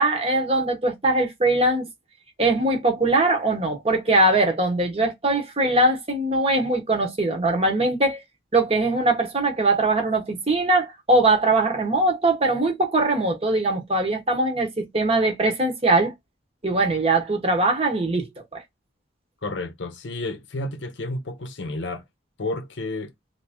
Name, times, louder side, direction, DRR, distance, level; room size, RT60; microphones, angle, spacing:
voice 1, 0.0-1.8 2.4-8.2 8.5-16.1 16.6-18.2 18.5-18.6, right 2 dB, 30° right, 0.8 m, -21 dB
voice 2, 19.4-22.0 22.4-23.1, left 2 dB, 70° left, 0.7 m, -31 dB
2.9 x 2.5 x 3.4 m
head